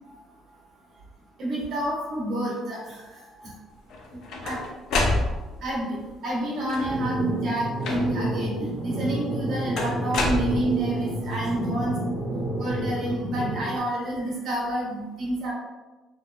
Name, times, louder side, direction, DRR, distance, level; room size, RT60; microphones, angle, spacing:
voice 1, 1.4-3.5 4.4-4.6 4.9-5.0 5.6-5.9 6.2-12.0 12.6-15.5, right 1 dB, 60° right, -5 dB, 1.1 m, -29 dB
sound 1, 3.9-5.7 6.6-7.1 7.8-8.4 9.8-11.0, left 2 dB, 70° left, 0.5 m, -28 dB
sound 2, 6.9-13.8, right 1 dB, 80° right, 0.7 m, -30 dB
3.1 x 2.1 x 2.4 m, 1.2 s
cardioid pair, 115°, 0 cm